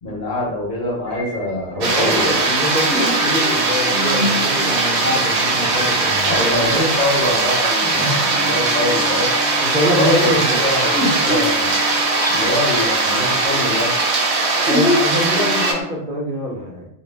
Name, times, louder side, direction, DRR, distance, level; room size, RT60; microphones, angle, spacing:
voice 1, 0.0-2.3 6.3-9.3 10.0-11.8 12.3-13.9, left 1 dB, 50° left, -5 dB, 0.9 m, -24 dB
sound 1, 1.1-15.8, left 2 dB, 10° right, 0.6 m, -28 dB
voice 2, 1.7-6.9 9.6-10.6 14.6-16.9, equal, 55° right, -4 dB, 0.8 m, -24 dB
sound 2, 1.8-15.7, right 3 dB, 85° right, 0.9 m, -19 dB
2.2 x 2.0 x 3.2 m, 0.77 s
omnidirectional pair, 1.1 m